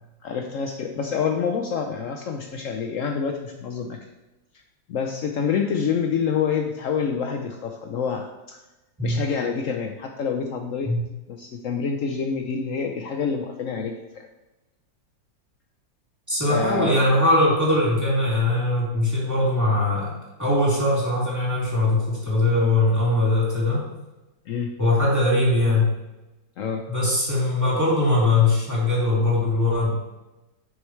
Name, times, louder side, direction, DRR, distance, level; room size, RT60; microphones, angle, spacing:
voice 1, 0.2-4.0 4.9-8.6 9.0-10.9 11.3-14.3 16.5-17.0 24.5-24.7 26.6-26.8, left 6 dB, 75° left, 4 dB, 0.7 m, -27 dB
voice 2, 16.3-23.8 24.8-25.9 26.9-29.9, left 2 dB, 10° right, -7 dB, 3.0 m, -21 dB
10.5 x 6.4 x 3.2 m, 1.0 s
omnidirectional pair, 2.1 m